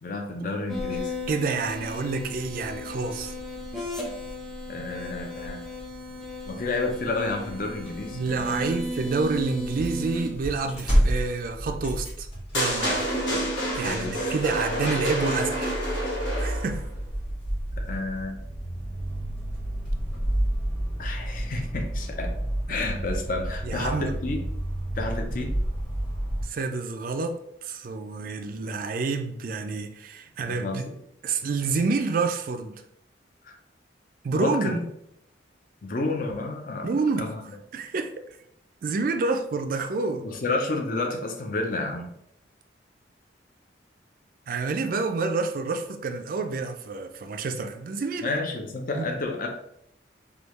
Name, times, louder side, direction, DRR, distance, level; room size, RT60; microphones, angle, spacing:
voice 1, 0.0-1.2 4.7-5.7 6.5-8.7 13.3-13.4 13.8-14.3 17.8-18.4 21.0-22.3 22.7-24.4 25.0-25.5 30.4-30.9 33.4-33.6 34.3-34.8 35.8-36.9 37.2-37.4 40.2-42.1 48.2-49.5, left 2 dB, 50° left, 0.5 m, -30 dB
sound 1, 0.7-11.1, left 1 dB, ahead, 0.6 m, -35 dB
voice 2, 1.3-3.3 8.1-12.3 12.5-13.1 13.7-15.8 16.4-16.8 22.7-22.8 23.6-24.2 26.4-30.8 31.2-32.8 34.2-34.7 36.8-37.3 37.7-38.3 38.8-40.3 44.5-48.3 48.9-49.0, right 4 dB, 50° right, 0.3 m, -28 dB
sound 2, 7.2-26.4, right 1 dB, 30° left, 1.4 m, -31 dB
sound 3, 12.5-16.8, equal, 80° left, 1.5 m, -28 dB
3.4 x 2.3 x 3.0 m
head